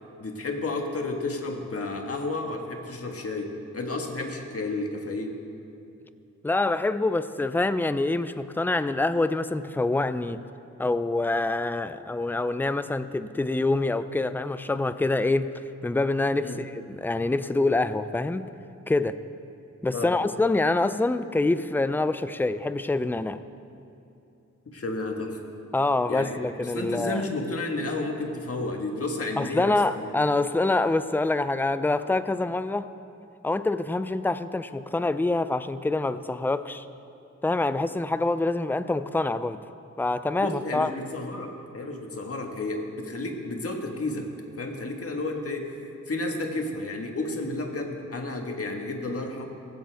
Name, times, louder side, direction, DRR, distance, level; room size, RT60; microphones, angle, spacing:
voice 1, 0.2-5.4 16.4-16.6 19.9-20.1 24.7-25.4 26.1-30.1 40.4-44.3 44.6-45.8 46.1-49.5, left 2 dB, 50° left, 2 dB, 1.6 m, -32 dB
voice 2, 6.4-10.4 10.8-18.4 18.9-19.2 19.8-23.4 25.7-27.2 29.4-32.9 33.4-36.9 37.4-39.6 40.0-40.9, left 2 dB, 5° left, 12 dB, 0.4 m, -26 dB
17.5 x 15.5 x 3.5 m, 2.7 s
wide cardioid pair, 110°, 29 cm